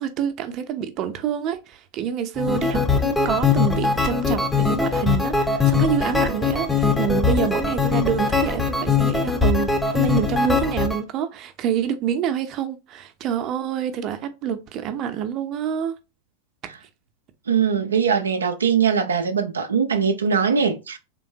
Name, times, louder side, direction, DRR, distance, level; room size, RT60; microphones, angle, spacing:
voice 1, 0.0-15.9, right 8 dB, 35° right, 0.7 m, -27 dB
sound 1, 2.4-11.0, left 5 dB, 10° left, 0.7 m, -21 dB
voice 2, 17.5-21.0, right 6 dB, 70° right, 0.5 m, -21 dB
3.7 x 3.5 x 2.7 m
figure-of-eight pair, 90°, 0 cm